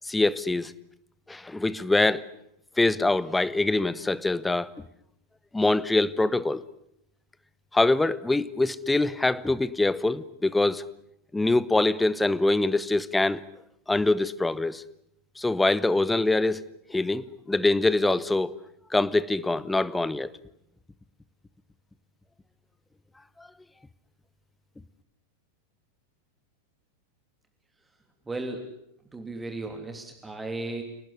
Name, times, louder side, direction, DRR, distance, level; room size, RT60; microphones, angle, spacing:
voice 1, 0.0-0.7 1.3-2.2 2.8-4.7 5.5-6.6 7.7-10.8 11.3-13.4 13.9-14.8 15.4-16.6 16.9-18.6 18.9-20.3, left 2 dB, 5° left, 18 dB, 1.1 m, -24 dB
voice 2, 28.3-28.7 29.1-30.8, right 2 dB, 10° right, 5 dB, 3.1 m, -35 dB
28.5 x 19.0 x 9.9 m, 0.76 s
figure-of-eight pair, 90°, 0 cm